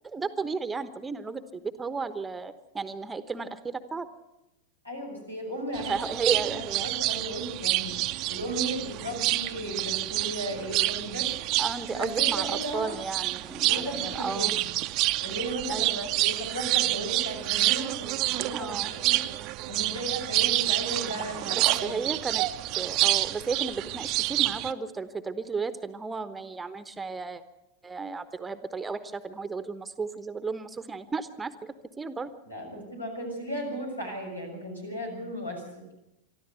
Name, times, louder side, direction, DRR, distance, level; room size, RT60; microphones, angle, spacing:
voice 1, 0.0-4.1 5.9-6.9 11.6-14.5 15.7-16.1 18.5-18.9 21.6-22.5 22.8-27.4 27.8-32.3, right 4 dB, 10° right, 12 dB, 1.1 m, -34 dB
voice 2, 4.8-7.9 8.3-11.3 11.9-12.9 13.7-14.7 15.2-19.2 19.7-21.9 32.5-35.8, right 1 dB, 85° left, 0 dB, 6.6 m, -35 dB
sound 1, 5.7-24.7, right 18 dB, 40° right, 0.7 m, -28 dB
24.0 x 13.5 x 8.1 m, 0.90 s
figure-of-eight pair, 90°, 0 cm